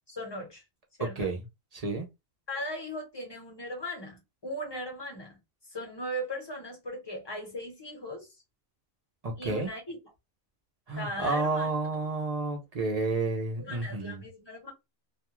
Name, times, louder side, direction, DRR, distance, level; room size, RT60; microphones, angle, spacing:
voice 1, 0.1-0.6 1.0-1.3 2.5-5.4 5.7-8.3 9.4-10.0 11.0-11.7 12.8-12.9 13.6-14.7, equal, 20° left, 0.9 m, -38 dB
voice 2, 1.7-2.1 9.2-9.7 10.9-14.2, right 3 dB, 50° right, 0.4 m, -30 dB
2.4 x 2.3 x 2.9 m
omnidirectional pair, 1.4 m